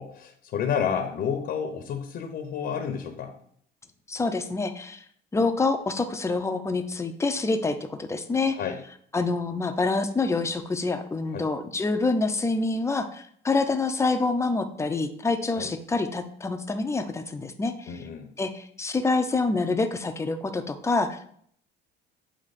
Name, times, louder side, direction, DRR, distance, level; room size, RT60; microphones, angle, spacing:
voice 1, 0.0-3.3 8.4-8.8 11.3-11.5 15.6-15.7 17.9-18.3, left 7 dB, 55° left, 5 dB, 0.8 m, -30 dB
voice 2, 4.1-5.0 5.3-8.6 9.1-17.9 18.4-21.3, left 3 dB, 15° left, 7 dB, 0.6 m, -26 dB
8.6 x 2.9 x 4.1 m, 0.62 s
cardioid pair, 120°, 20 cm